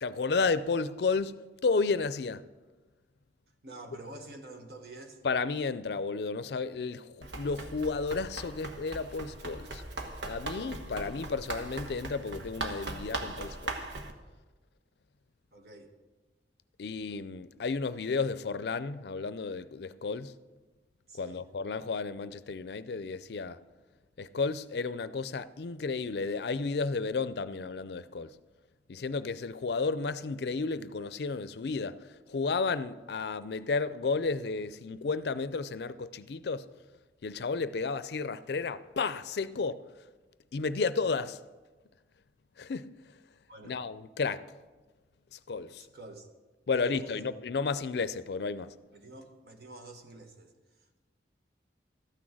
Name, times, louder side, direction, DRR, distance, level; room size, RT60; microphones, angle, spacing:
voice 1, 0.0-2.4 5.2-9.8 10.2-13.8 16.8-20.3 21.2-23.6 24.2-28.3 28.9-36.7 37.2-39.8 40.5-41.4 42.6-42.9 43.6-44.4 45.3-45.9 46.7-48.7, left 4 dB, 65° left, 0.4 m, -32 dB
voice 2, 3.6-5.2 15.5-15.9 21.1-21.5 43.5-43.8 45.9-46.3 46.7-47.3 48.9-50.8, right 2 dB, 60° right, 1.4 m, -47 dB
Run, 7.2-14.1, right 2 dB, 80° right, 1.2 m, -39 dB
13.0 x 6.3 x 7.5 m
head